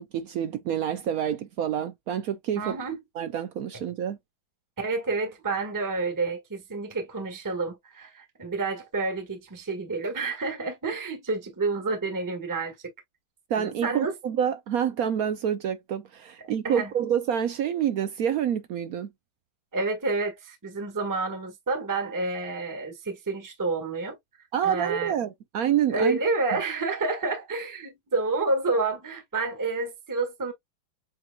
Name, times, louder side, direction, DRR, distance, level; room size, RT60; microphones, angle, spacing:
voice 1, 0.0-2.8 3.2-4.2 13.5-19.1 24.5-26.2, right 9 dB, 75° right, 0.8 m, -27 dB
voice 2, 2.6-3.0 4.8-12.9 13.6-14.1 16.6-16.9 19.7-24.2 24.6-25.2 25.9-30.5, right 3 dB, 10° right, 1.1 m, -29 dB
7.8 x 3.0 x 2.2 m
omnidirectional pair, 2.2 m